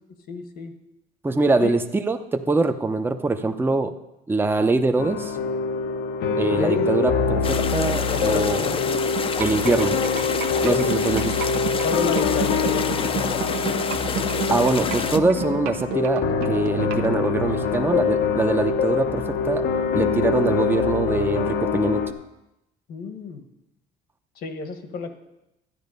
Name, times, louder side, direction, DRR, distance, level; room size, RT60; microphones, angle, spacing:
voice 1, 0.3-0.7 1.6-1.7 6.6-6.9 8.0-9.0 10.8-11.0 11.8-13.8 22.9-23.4 24.4-25.1, left 4 dB, 65° left, 8 dB, 1.4 m, -30 dB
voice 2, 1.2-3.9 4.3-5.4 6.4-8.8 9.4-10.0 10.6-11.3 14.5-19.7 20.0-22.1, right 3 dB, 10° right, 7 dB, 0.7 m, -23 dB
sound 1, 5.0-22.1, left 5 dB, 80° left, 1.1 m, -24 dB
sound 2, 7.4-15.2, left 6 dB, 30° left, 0.6 m, -29 dB
sound 3, 9.2-17.1, right 11 dB, 85° right, 1.0 m, -30 dB
12.5 x 9.4 x 5.4 m, 0.91 s
cardioid pair, 110°, 17 cm